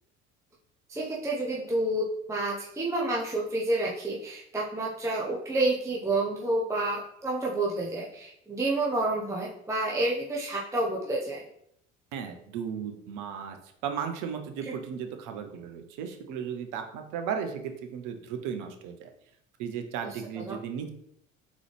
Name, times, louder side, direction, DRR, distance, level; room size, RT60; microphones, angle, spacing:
voice 1, 0.9-11.4 14.6-14.8 20.0-20.6, right 2 dB, 10° right, -3 dB, 0.6 m, -29 dB
voice 2, 12.1-13.6 13.8-19.1 19.6-20.9, right 7 dB, 55° right, 6 dB, 0.7 m, -35 dB
3.8 x 3.0 x 3.2 m, 0.72 s
figure-of-eight pair, 60°, 38 cm